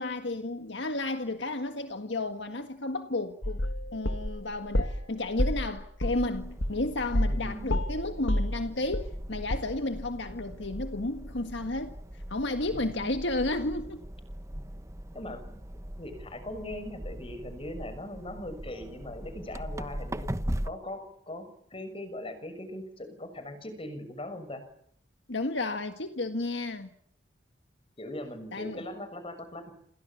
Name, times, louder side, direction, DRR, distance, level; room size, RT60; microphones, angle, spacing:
voice 1, 0.0-3.6 3.9-14.0 25.3-26.9 28.5-28.9, left 2 dB, 65° left, 1.7 m, -32 dB
sound 1, 3.4-5.0 5.4-7.4 7.7-9.2 9.5-9.6, left 1 dB, 90° left, 2.6 m, -28 dB
sound 2, 6.0-20.7, equal, 15° right, 1.1 m, -40 dB
voice 2, 7.3-7.7 12.7-13.1 14.5-14.6 15.1-15.6 16.0-20.3 20.6-21.5 21.7-24.6 28.0-29.7, left 1 dB, 30° left, 6.4 m, -40 dB
29.0 x 28.0 x 7.2 m
head